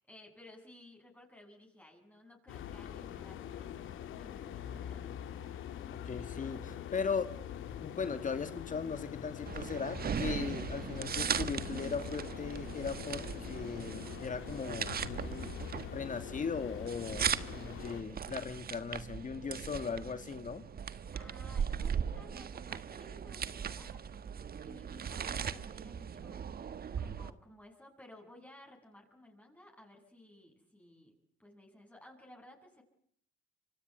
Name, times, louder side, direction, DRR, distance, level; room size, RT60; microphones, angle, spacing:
voice 1, 0.0-5.4 21.1-24.0 24.6-26.4 27.0-31.1 31.4-32.8, left 1 dB, 5° left, 1 dB, 7.8 m, -57 dB
sound 1, 2.5-18.0, left 9 dB, 85° left, 2.7 m, -44 dB
voice 2, 5.9-7.3 7.8-15.5 15.9-20.6, left 5 dB, 40° left, 10 dB, 2.2 m, -38 dB
sound 2, 9.5-27.3, right 7 dB, 50° right, 1.6 m, -39 dB
27.0 x 25.0 x 8.0 m, 0.68 s
cardioid pair, 90°, 20 cm